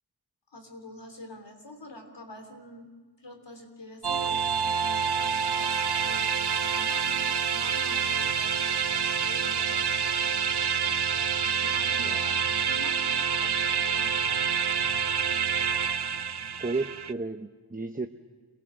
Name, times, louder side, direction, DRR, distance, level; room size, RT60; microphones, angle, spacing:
voice 1, 0.5-2.9 3.2-8.9 9.1-10.3 11.4-14.7, left 1 dB, 90° left, 4 dB, 3.3 m, -46 dB
sound 1, 4.0-17.1, right 6 dB, 65° right, 0.8 m, -27 dB
voice 2, 16.6-18.1, right 3 dB, 20° right, 6 dB, 0.9 m, -32 dB
28.5 x 18.5 x 7.6 m, 1.4 s
wide cardioid pair, 50°, 42 cm